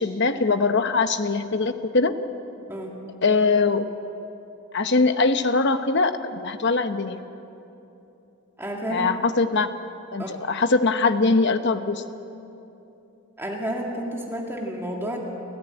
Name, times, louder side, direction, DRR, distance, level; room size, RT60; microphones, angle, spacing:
voice 1, 0.0-2.1 3.2-3.9 4.7-7.2 8.9-9.7 10.1-12.0, left 3 dB, 50° left, 9 dB, 0.9 m, -22 dB
voice 2, 8.6-9.1 10.2-10.3 13.4-15.2, right 1 dB, 10° right, -1 dB, 1.9 m, -30 dB
29.0 x 13.5 x 8.9 m, 2.9 s
head